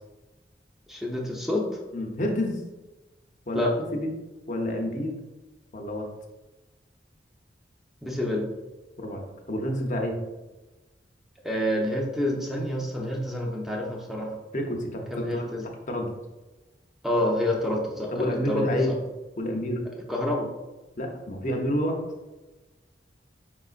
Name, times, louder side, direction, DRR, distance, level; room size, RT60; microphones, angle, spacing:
voice 1, 0.9-1.8 3.5-3.7 8.0-8.5 11.4-14.4 15.1-15.6 17.0-18.8 20.1-20.5, left 1 dB, ahead, -1 dB, 0.6 m, -28 dB
voice 2, 1.9-2.6 3.5-4.1 4.5-5.2 5.7-6.1 9.0-10.2 14.5-15.5 15.9-16.1 18.1-18.9 19.4-19.8 21.0-22.0, left 1 dB, 40° left, 2 dB, 0.7 m, -29 dB
5.3 x 3.9 x 2.4 m, 1.1 s
head